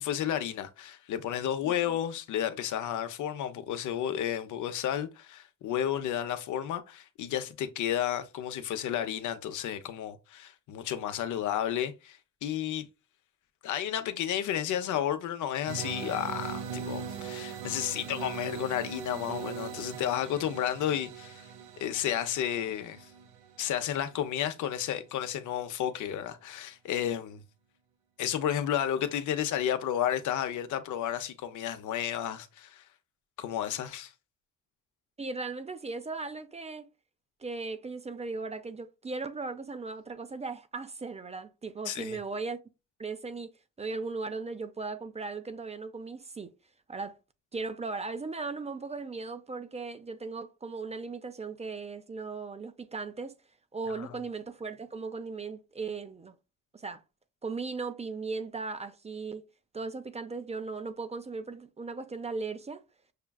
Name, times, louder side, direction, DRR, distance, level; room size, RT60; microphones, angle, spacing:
voice 1, 0.0-12.9 13.6-21.5 21.8-23.1 23.6-27.4 28.2-32.8 33.4-34.1 41.9-42.2 54.0-54.2, left 10 dB, 75° left, 0.7 m, -32 dB
sound 1, 15.7-24.5, right 7 dB, 85° right, 0.8 m, -40 dB
voice 2, 35.2-36.9 37.4-42.6 43.0-43.5 43.8-46.5 46.9-47.2 47.5-53.3 53.7-56.3 56.7-57.0 57.4-59.4 59.7-62.8, right 4 dB, 20° right, 0.5 m, -37 dB
6.5 x 2.3 x 2.3 m
cardioid pair, 90°, 30 cm